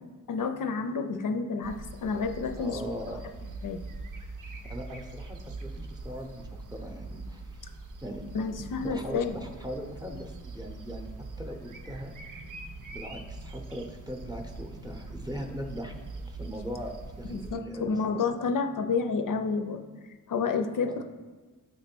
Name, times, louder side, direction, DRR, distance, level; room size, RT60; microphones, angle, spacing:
voice 1, 0.3-2.8 3.6-3.8 8.3-9.3 17.3-19.8 20.3-21.0, left 5 dB, 70° left, 6 dB, 0.5 m, -30 dB
sound 1, 1.6-17.5, right 2 dB, 65° right, 0.6 m, -42 dB
voice 2, 2.6-3.2 4.7-7.6 8.0-8.2 8.6-11.1 11.4-12.1 12.9-15.9 16.3-18.2 20.8-21.0, equal, 10° right, 2 dB, 0.6 m, -40 dB
7.7 x 3.0 x 4.4 m, 1.3 s
wide cardioid pair, 125°, 33 cm